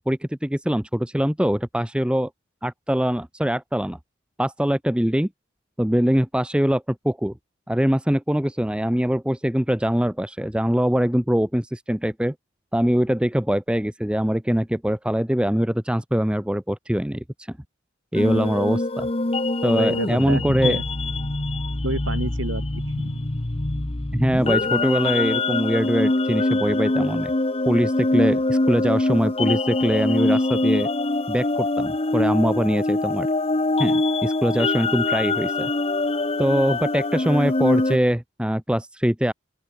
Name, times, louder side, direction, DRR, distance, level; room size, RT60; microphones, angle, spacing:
voice 1, 0.0-2.3 2.6-4.0 4.4-5.3 5.8-7.3 7.7-12.3 12.7-17.2 18.1-19.1 19.6-20.8 24.1-27.3 27.7-30.9 31.3-33.3 33.8-35.7 36.4-39.3, equal, 5° right, 0.8 m, -23 dB
sound 1, 18.1-38.0, left 2 dB, 30° left, 1.0 m, -24 dB
voice 2, 19.7-20.8 21.8-23.2, right 1 dB, 80° right, 5.3 m, -29 dB
open air
head